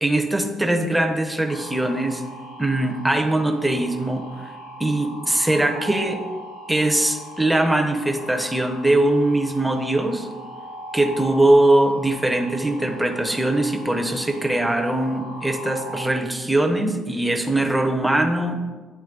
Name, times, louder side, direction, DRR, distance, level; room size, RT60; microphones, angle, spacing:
voice 1, 0.0-2.2 2.6-4.5 4.8-6.2 6.7-10.3 10.9-18.7, right 1 dB, 5° right, 4 dB, 0.5 m, -21 dB
sound 1, 1.5-16.0, right 1 dB, 90° left, 1.5 m, -39 dB
8.9 x 3.0 x 3.6 m, 1.4 s
cardioid pair, 140°, 0 cm